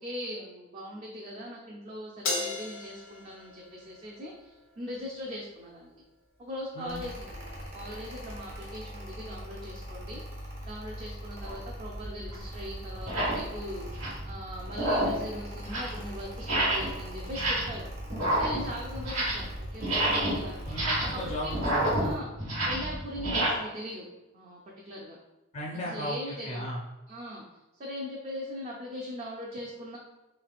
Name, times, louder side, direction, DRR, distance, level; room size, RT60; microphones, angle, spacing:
voice 1, 0.0-5.9 6.4-10.2 10.6-17.9 18.4-20.7 21.1-21.6 21.9-22.3 22.6-24.1 24.3-24.6 24.8-25.2 25.8-26.6 27.1-27.4 27.8-30.0, equal, 35° right, -3 dB, 0.5 m, -40 dB
Crash cymbal, 2.2-4.8, left 3 dB, 85° left, 0.8 m, -36 dB
Mechanical fan, 6.9-22.2, equal, 60° right, 1.0 m, -41 dB
sound 1, 11.4-11.6 12.3-12.4 13.0-13.4 13.8-14.3 14.7-15.2 15.5-16.0 16.4-16.9 17.2-17.8 18.1-19.5 19.8-23.5, right 1 dB, 85° right, 1.4 m, -29 dB
voice 2, 20.6-21.9 25.5-26.8, equal, 35° left, -3 dB, 0.4 m, -36 dB
3.2 x 3.1 x 2.4 m, 1.0 s
head